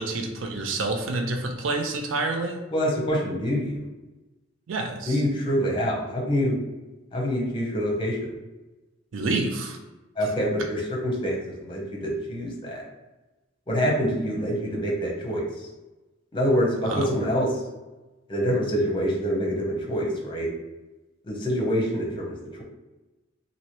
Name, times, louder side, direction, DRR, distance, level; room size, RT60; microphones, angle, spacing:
voice 1, 0.0-2.6 4.7-5.2 9.1-9.8 16.8-17.1, right 2 dB, 75° right, 3 dB, 0.4 m, -28 dB
voice 2, 2.7-3.8 5.0-6.6 7.1-8.3 10.2-12.8 13.7-15.7 16.3-17.5 18.3-20.5 21.2-22.6, equal, 25° left, -2 dB, 0.7 m, -26 dB
3.0 x 2.6 x 2.9 m, 1.1 s
head